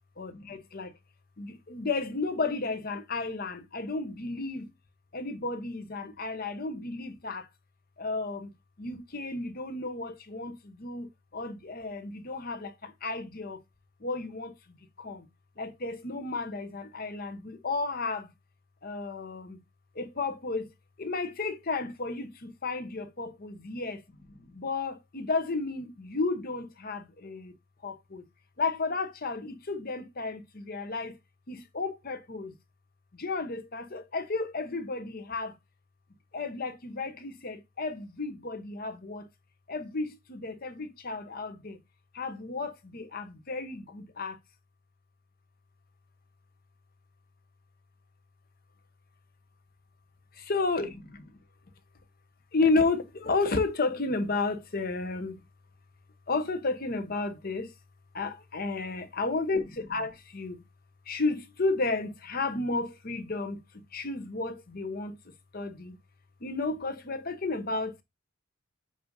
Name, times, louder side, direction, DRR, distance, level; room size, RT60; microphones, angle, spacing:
voice 1, 0.2-0.9 1.4-4.7 5.1-7.5 8.0-8.5 8.8-13.6 14.0-15.3 15.6-18.3 18.8-19.6 19.9-20.7 21.0-24.0 24.3-27.5 27.8-28.3 28.6-31.1 31.5-32.5 33.1-35.6 36.3-39.3 39.7-41.8 42.1-44.4 50.4-51.3 52.5-55.4 56.3-57.7 58.1-60.6 61.1-65.2 65.5-66.0 66.4-68.0, left 3 dB, 45° left, 0.9 m, -32 dB
7.7 x 2.7 x 5.2 m
head